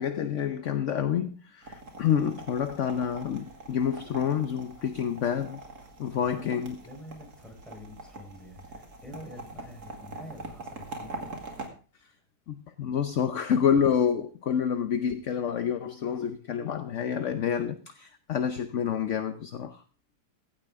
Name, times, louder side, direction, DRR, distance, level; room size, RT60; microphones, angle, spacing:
voice 1, 0.0-5.6 6.0-6.8 12.5-19.8, left 8 dB, 60° left, 9 dB, 1.1 m, -28 dB
sound 1, 1.6-11.7, right 2 dB, 90° right, 2.9 m, -44 dB
voice 2, 6.3-11.3, left 1 dB, ahead, 1 dB, 4.3 m, -47 dB
16.0 x 12.0 x 3.6 m, 0.36 s
omnidirectional pair, 1.6 m